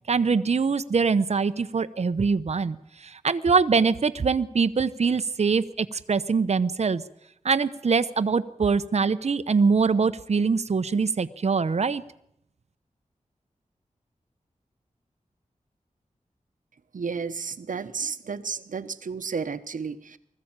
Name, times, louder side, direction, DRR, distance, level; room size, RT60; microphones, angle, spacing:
voice 1, 0.1-2.8 3.0-7.0 7.4-12.0, right 5 dB, 55° right, 11 dB, 0.8 m, -23 dB
voice 2, 16.9-20.2, right 5 dB, 80° right, 12 dB, 1.0 m, -32 dB
20.0 x 14.5 x 8.8 m, 0.76 s
wide cardioid pair, 90°, 13 cm